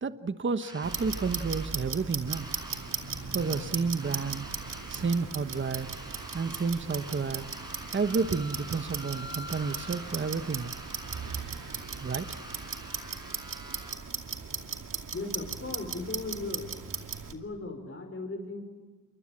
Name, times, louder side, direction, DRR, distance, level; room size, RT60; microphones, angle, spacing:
voice 1, 0.0-2.5 3.3-4.5 4.9-5.9 6.3-7.5 7.9-10.7 12.0-12.4, right 4 dB, 40° right, 10 dB, 1.2 m, -30 dB
sound 1, 0.6-13.9, equal, 15° right, 6.4 m, -46 dB
Clock, 0.8-17.3, right 6 dB, 75° right, 2.5 m, -37 dB
voice 2, 15.1-16.9 17.3-18.6, left 3 dB, 40° left, 5 dB, 5.4 m, -37 dB
29.0 x 24.0 x 7.4 m, 1.3 s
cardioid pair, 75°, 32 cm